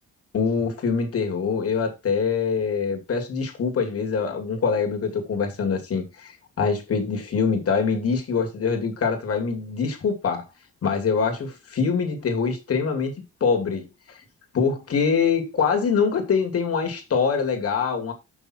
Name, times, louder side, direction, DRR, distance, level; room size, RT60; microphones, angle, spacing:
voice 1, 0.3-10.5 10.8-14.2 14.5-18.1, left 5 dB, 50° left, 2.8 m, -24 dB
6.5 x 6.1 x 4.6 m
cardioid pair, 90°, 30 cm